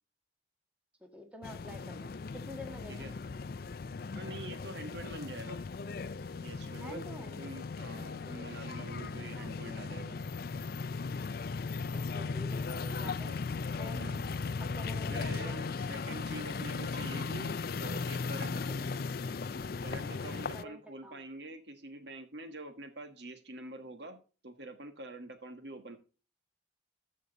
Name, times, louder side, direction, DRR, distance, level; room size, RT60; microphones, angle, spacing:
voice 1, 1.0-3.1 6.8-7.4 9.3-9.5 11.9-13.3 13.8-14.1 14.6-15.6 20.5-21.2, equal, 5° right, 4 dB, 1.8 m, -48 dB
sound 1, 1.4-20.6, left 4 dB, 50° left, 0.4 m, -37 dB
voice 2, 4.1-5.6 6.4-7.0 7.4-10.2 12.8-13.4 13.9-14.3 15.1-18.9 19.8-24.2 24.4-26.0, right 2 dB, 65° right, 8 dB, 1.5 m, -46 dB
13.5 x 6.3 x 4.0 m, 0.34 s
head